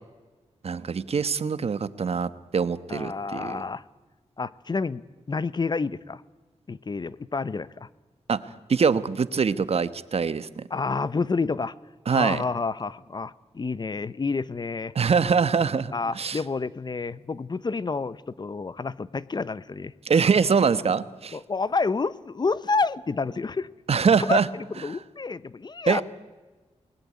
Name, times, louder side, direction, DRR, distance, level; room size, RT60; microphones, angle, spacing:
voice 1, 0.6-3.6 8.3-8.4 8.7-10.5 12.1-12.4 14.9-16.4 20.0-21.4 23.9-24.5 25.9-26.0, right 5 dB, 60° right, 14 dB, 1.1 m, -23 dB
voice 2, 2.9-3.8 4.4-5.0 5.3-6.2 6.7-7.9 10.7-11.7 12.1-14.9 15.9-19.9 21.3-23.7 24.2-24.4 24.7-26.0, left 4 dB, 40° left, 18 dB, 0.8 m, -29 dB
28.5 x 20.0 x 9.5 m, 1.3 s
wide cardioid pair, 115°, 12 cm